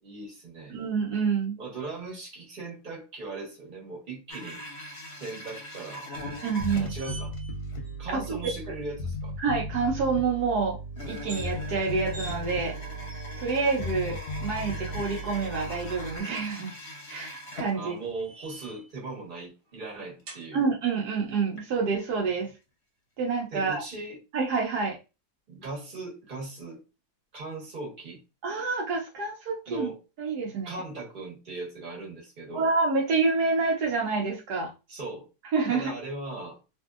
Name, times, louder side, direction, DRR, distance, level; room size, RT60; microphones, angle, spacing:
voice 1, 0.0-0.7 1.6-4.6 5.2-6.0 6.8-7.3 8.0-9.3 17.7-20.6 23.5-24.2 25.5-26.8 27.3-28.2 29.7-30.0 30.6-32.7 34.9-35.3 35.6-36.6, right 3 dB, 35° right, -2 dB, 1.3 m, -38 dB
voice 2, 0.7-1.6 6.4-6.9 8.1-8.4 9.4-10.8 11.1-12.7 13.4-16.7 17.1-17.9 20.5-22.5 23.2-23.8 24.3-25.0 28.4-29.9 30.2-30.8 32.5-34.7 35.5-35.8, right 4 dB, 75° right, 0 dB, 1.3 m, -27 dB
sound 1, 4.3-7.4 7.7-7.8 8.2-8.3 9.1-9.2 11.0-18.3 18.6-18.7 19.4-19.5 20.0-20.2 20.7-21.6 22.1-22.5 23.8-23.9 24.0-24.1, left 1 dB, 50° left, 0.9 m, -41 dB
Bass guitar, 6.6-16.2, equal, 75° left, 1.1 m, -36 dB
sound 2, 6.6-7.5 7.8-8.0 8.4-8.6 11.1-11.5 12.1-12.4 13.1-13.6 14.6-15.4 17.3-18.9 20.3-20.5, right 2 dB, 50° right, 1.1 m, -45 dB
3.0 x 2.7 x 2.4 m, 0.28 s
omnidirectional pair, 1.7 m